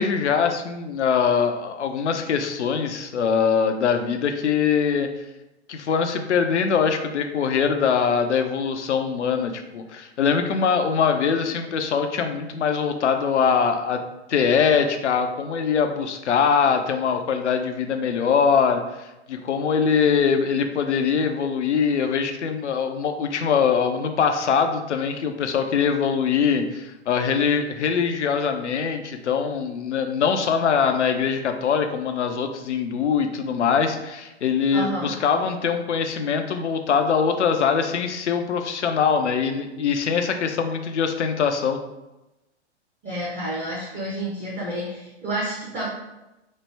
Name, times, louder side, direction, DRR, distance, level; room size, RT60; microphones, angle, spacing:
voice 1, 0.0-5.1 5.7-14.0 14.3-41.8, left 6 dB, 75° left, 6 dB, 0.5 m, -22 dB
voice 2, 34.7-35.1 43.0-45.9, right 1 dB, 20° right, -7 dB, 0.7 m, -29 dB
3.1 x 2.0 x 3.3 m, 0.97 s
figure-of-eight pair, 110°, 35 cm